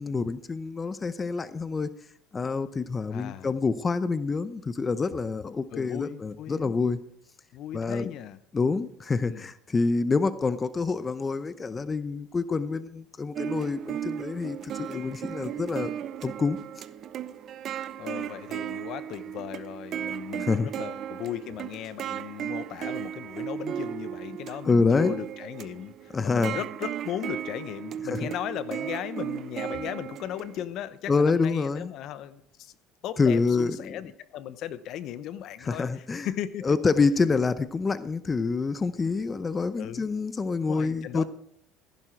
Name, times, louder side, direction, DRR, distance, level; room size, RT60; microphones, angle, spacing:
voice 1, 0.0-1.9 2.3-7.0 7.7-8.1 8.5-15.9 16.2-16.6 20.4-20.7 24.6-25.1 26.1-26.6 31.1-31.9 33.2-33.9 35.6-36.3 36.6-41.3, left 4 dB, 25° left, 14 dB, 0.7 m, -27 dB
voice 2, 3.1-3.5 5.7-6.8 7.5-8.4 9.3-9.5 18.0-25.9 26.2-32.7 33.0-36.7 39.8-40.1 40.6-41.3, left 11 dB, 60° left, 15 dB, 0.9 m, -37 dB
sound 1, 13.4-30.6, right 10 dB, 50° right, 0.7 m, -36 dB
15.0 x 11.0 x 4.6 m, 0.68 s
supercardioid pair, 95°, 0 cm